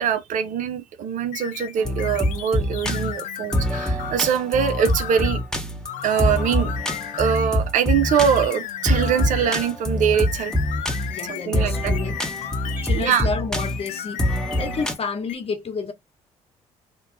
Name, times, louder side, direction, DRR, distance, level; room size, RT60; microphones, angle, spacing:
voice 1, 0.0-5.4 6.0-6.7 7.2-10.5 11.3-11.9 12.7-13.3, right 8 dB, 60° right, 0.5 m, -23 dB
sound 1, 1.3-4.2 4.6-5.5 5.8-7.5 7.9-9.8 10.1-13.3 13.6-14.9 15.3-15.4, left 11 dB, 65° left, 0.4 m, -35 dB
sound 2, 1.8-14.9, left 1 dB, 5° left, 0.9 m, -25 dB
voice 2, 11.1-12.2 12.8-14.2 14.5-15.9, left 5 dB, 45° left, 0.9 m, -30 dB
2.9 x 2.2 x 2.5 m
hypercardioid pair, 55°, 14 cm